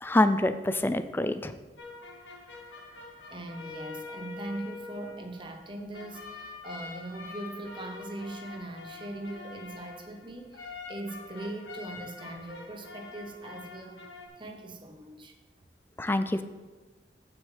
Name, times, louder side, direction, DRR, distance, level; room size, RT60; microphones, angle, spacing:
voice 1, 0.0-1.5 16.0-16.4, left 1 dB, 10° left, 11 dB, 0.4 m, -26 dB
sound 1, 1.8-14.3, left 4 dB, 85° left, 1.5 m, -45 dB
voice 2, 3.3-14.1 14.4-15.3, right 1 dB, 25° right, 4 dB, 1.0 m, -40 dB
15.0 x 6.2 x 3.3 m, 1.3 s
head